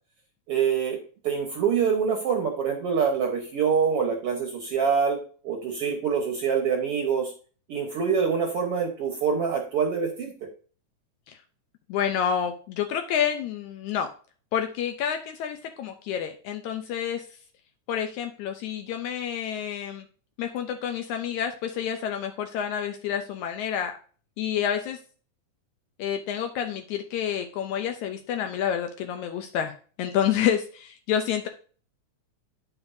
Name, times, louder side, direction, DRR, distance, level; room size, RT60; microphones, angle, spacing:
voice 1, 0.5-5.2 5.4-7.3 7.7-10.3, right 6 dB, 60° right, 2 dB, 1.8 m, -25 dB
voice 2, 11.9-14.1 14.5-17.3 17.9-20.1 20.4-24.0 24.4-25.0 26.0-31.5, left 9 dB, 75° left, 5 dB, 2.0 m, -29 dB
9.5 x 7.0 x 2.7 m, 0.40 s
omnidirectional pair, 3.5 m